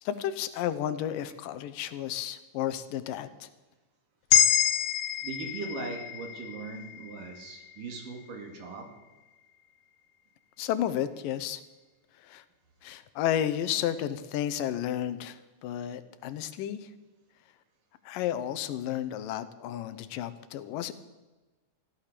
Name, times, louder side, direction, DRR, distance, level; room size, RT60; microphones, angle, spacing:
voice 1, 0.0-3.5 10.6-11.6 12.2-12.4 12.8-16.9 18.1-20.9, left 11 dB, 90° left, 13 dB, 2.5 m, -32 dB
sound 1, 4.3-8.6, left 10 dB, 70° left, 2.1 m, -28 dB
voice 2, 5.2-9.0, right 3 dB, 80° right, 3 dB, 3.9 m, -39 dB
15.0 x 11.5 x 6.8 m, 1.2 s
omnidirectional pair, 3.8 m